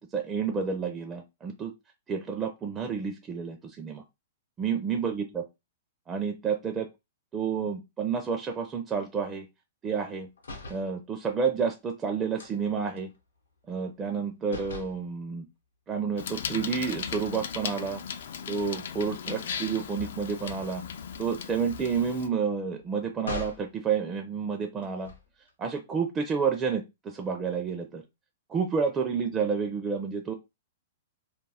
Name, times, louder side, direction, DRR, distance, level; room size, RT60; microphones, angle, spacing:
voice 1, 0.0-1.7 2.1-4.0 4.6-5.5 6.1-6.9 7.3-9.5 9.8-10.3 10.7-13.1 13.7-15.5 15.9-18.0 18.5-20.8 21.2-25.1 25.6-28.0 28.5-30.3, right 6 dB, 20° right, 3 dB, 0.4 m, -30 dB
sound 1, 10.4-10.9 12.4-14.2 14.5-15.0 16.3-17.4 17.8-18.0 18.4-23.7 24.8-25.5, left 3 dB, 90° left, 0.7 m, -45 dB
Bicycle, 16.2-22.3, left 7 dB, 70° left, 0.3 m, -37 dB
2.3 x 2.0 x 3.3 m, 0.23 s
hypercardioid pair, 125°, 0 cm